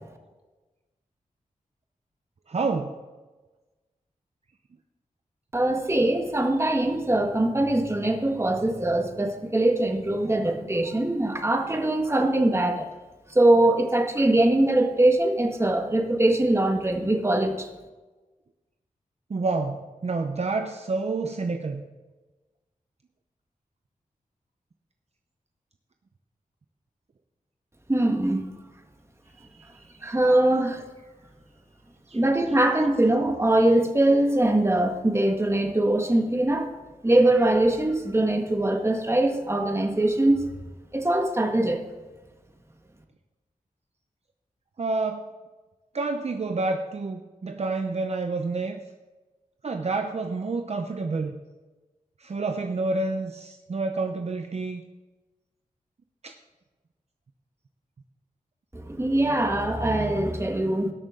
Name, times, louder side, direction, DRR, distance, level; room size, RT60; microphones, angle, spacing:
voice 1, 2.5-2.9 19.3-21.8 29.4-29.9 32.1-32.2 44.8-45.3 45.9-48.8 49.6-51.4 52.2-54.8 56.2-56.4, right 3 dB, 50° right, 5 dB, 0.7 m, -29 dB
voice 2, 5.5-12.9 13.3-17.7 27.9-28.4 30.0-30.8 32.1-36.7 37.0-40.5 40.9-41.8 58.7-60.9, right 1 dB, 20° right, 3 dB, 1.6 m, -22 dB
19.0 x 6.5 x 3.8 m, 1.2 s
wide cardioid pair, 80°, 14 cm